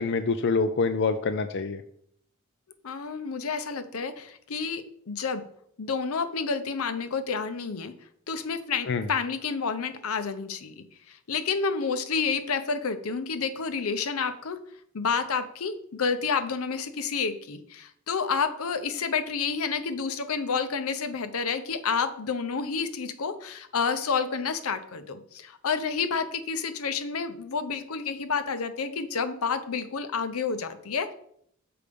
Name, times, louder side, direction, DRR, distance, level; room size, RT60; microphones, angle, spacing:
voice 1, 0.0-1.8 8.9-9.1, left 4 dB, 55° left, 9 dB, 0.4 m, -26 dB
voice 2, 2.8-5.4 5.8-7.9 8.3-14.6 14.9-31.1, left 5 dB, 80° left, 9 dB, 0.7 m, -29 dB
6.8 x 4.8 x 5.2 m, 0.67 s
head